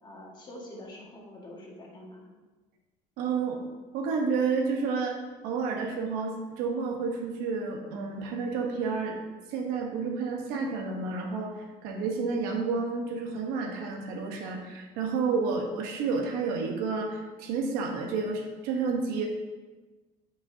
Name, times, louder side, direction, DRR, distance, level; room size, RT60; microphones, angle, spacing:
voice 1, 0.0-2.3, left 1 dB, 30° left, -3 dB, 1.7 m, -45 dB
voice 2, 3.2-3.6 3.9-9.2 9.5-19.3, right 4 dB, 85° right, 2 dB, 1.0 m, -30 dB
8.7 x 5.4 x 2.7 m, 1.3 s
cardioid pair, 125°, 15 cm